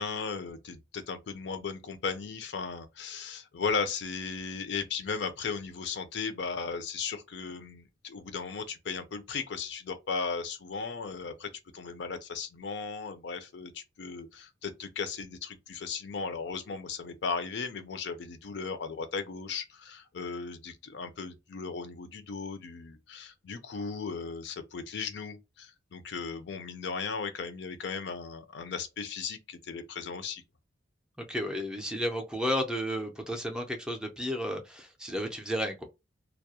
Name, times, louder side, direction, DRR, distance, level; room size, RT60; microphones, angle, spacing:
voice 1, 0.0-30.4, left 5 dB, 65° left, 0.5 m, -36 dB
voice 2, 31.3-35.9, equal, 5° right, 0.4 m, -32 dB
2.2 x 2.0 x 2.7 m
head